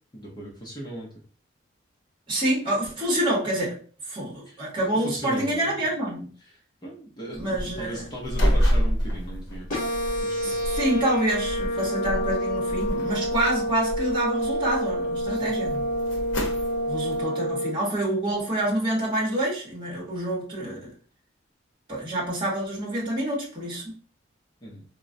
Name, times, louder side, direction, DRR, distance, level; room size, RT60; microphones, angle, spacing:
voice 1, 0.1-1.1 4.5-5.8 6.4-9.7 10.2-10.6 15.3-15.5 17.1-17.2 24.6-24.8, right 1 dB, 20° left, -4 dB, 0.6 m, -38 dB
voice 2, 2.3-3.8 4.1-6.3 7.4-8.0 10.4-15.9 16.9-20.9 21.9-23.9, right 1 dB, 25° right, -3 dB, 0.9 m, -27 dB
sound 1, 7.3-17.2, equal, 65° left, 0.7 m, -29 dB
sound 2, 9.7-17.7, equal, 45° left, 1.1 m, -28 dB
3.6 x 2.0 x 2.5 m, 0.42 s
head